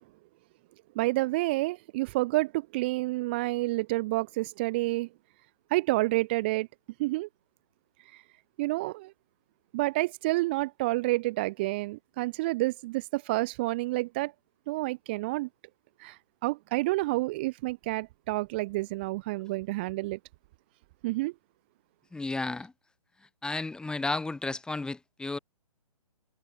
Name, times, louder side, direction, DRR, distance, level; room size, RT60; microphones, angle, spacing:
voice 1, 1.0-5.1 5.7-6.7 7.0-7.3 8.6-9.1 9.7-14.3 14.7-15.5 16.0-16.2 16.4-20.2 21.0-21.3, right 20 dB, 15° right, 0.4 m, -29 dB
voice 2, 22.1-22.7 23.4-25.4, left 3 dB, 5° left, 1.6 m, -33 dB
figure-of-eight pair, 140°, 20 cm